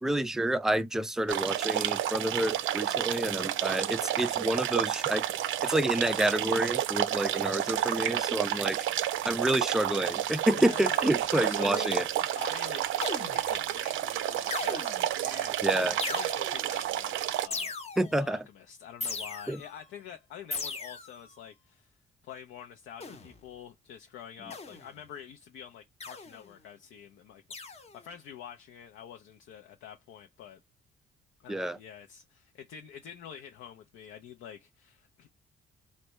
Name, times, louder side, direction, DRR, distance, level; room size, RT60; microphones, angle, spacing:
voice 1, 0.0-5.3 5.6-8.9 9.2-12.1 15.6-15.9 18.0-18.5 19.5-19.6 31.5-31.8, right 1 dB, ahead, 0.3 m, -29 dB
sound 1, 1.3-17.5, right 12 dB, 80° right, 0.4 m, -30 dB
voice 2, 10.5-11.0 11.3-12.1 12.4-13.1 13.3-17.8 18.1-21.9 22.2-30.6 31.4-35.3, left 9 dB, 80° left, 0.5 m, -46 dB
sound 2, 13.0-13.6 14.5-15.2 16.0-16.7 17.5-18.2 19.0-19.8 20.5-21.3 23.0-23.4 24.5-25.0 26.0-26.5 27.5-28.0, left 4 dB, 30° left, 0.8 m, -38 dB
3.3 x 2.2 x 2.9 m
cardioid pair, 90°, 20 cm